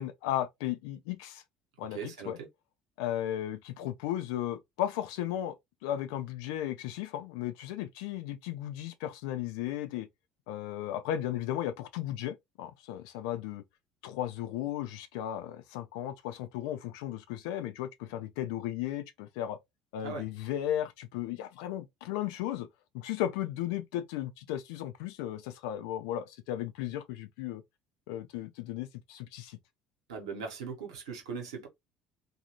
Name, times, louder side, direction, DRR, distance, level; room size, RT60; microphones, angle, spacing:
voice 1, 0.0-1.4 1.8-2.4 3.0-5.5 5.8-10.1 10.5-13.6 14.0-19.6 19.9-22.7 22.9-27.6 28.1-29.6, left 12 dB, 75° left, 0.5 m, -35 dB
voice 2, 1.9-2.5 20.0-20.2 30.1-31.7, right 5 dB, 85° right, 1.0 m, -39 dB
2.7 x 2.3 x 2.9 m
hypercardioid pair, 65°, 3 cm